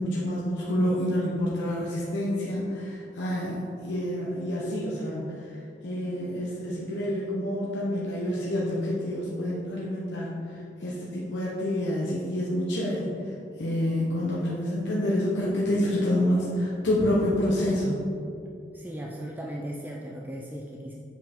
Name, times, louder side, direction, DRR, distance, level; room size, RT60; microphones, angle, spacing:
voice 1, 0.0-5.4 5.8-10.4 10.8-13.1 13.6-18.0, left 1 dB, 90° left, -5 dB, 0.9 m, -28 dB
voice 2, 14.2-14.5 18.7-20.9, equal, 10° right, -2 dB, 0.4 m, -37 dB
7.4 x 5.3 x 3.5 m, 2.6 s
head